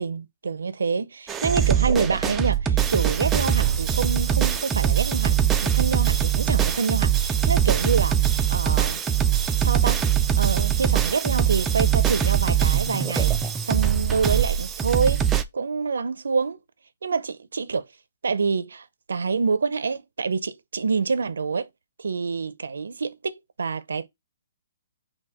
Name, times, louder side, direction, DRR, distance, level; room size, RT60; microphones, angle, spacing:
voice 1, 0.0-9.0 9.6-10.1 10.4-13.3 13.7-15.3 15.5-16.6 17.0-17.8 18.2-21.7 22.0-24.1, right 5 dB, 90° right, 0.6 m, -27 dB
sound 1, 1.3-15.4, right 9 dB, 15° right, 0.3 m, -22 dB
5.9 x 2.3 x 3.6 m
hypercardioid pair, 155°, 0 cm